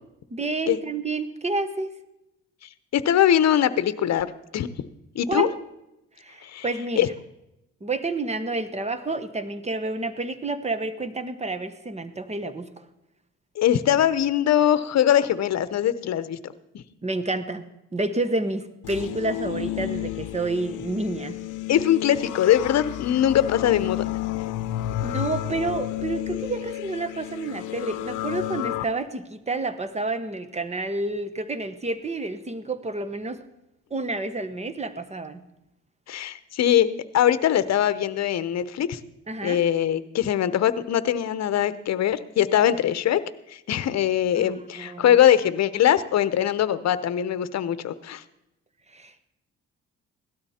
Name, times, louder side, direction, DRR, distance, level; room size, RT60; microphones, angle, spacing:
voice 1, 0.3-2.0 5.3-5.5 6.2-7.1 7.8-12.8 17.0-17.6 17.9-21.4 25.0-33.4 33.9-35.4 39.3-39.6 44.4-45.2 48.9-49.3, right 2 dB, 20° right, 12 dB, 1.2 m, -29 dB
voice 2, 2.9-4.7 5.1-5.5 6.4-6.6 7.0-7.1 13.6-16.8 21.7-24.1 36.1-39.0 39.4-43.2 43.5-48.2, left 10 dB, 60° left, 15 dB, 0.9 m, -22 dB
sound 1, 18.8-28.8, left 14 dB, 85° left, 0.7 m, -31 dB
17.0 x 12.5 x 4.3 m, 0.90 s
cardioid pair, 90°, 30 cm